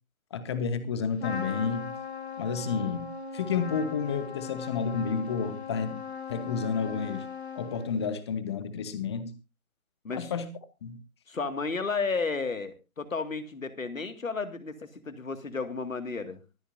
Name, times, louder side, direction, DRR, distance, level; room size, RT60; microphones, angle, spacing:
voice 1, 0.3-1.9 2.4-6.0 6.3-7.3 7.6-9.3 10.1-10.5 10.8-11.0, left 6 dB, 20° left, 13 dB, 1.1 m, -31 dB
Trumpet, 1.2-8.1, left 6 dB, 50° left, 2.7 m, -39 dB
voice 2, 11.3-16.4, left 4 dB, 70° left, 10 dB, 2.2 m, -33 dB
24.5 x 8.3 x 2.7 m, 0.27 s
figure-of-eight pair, 145°, 42 cm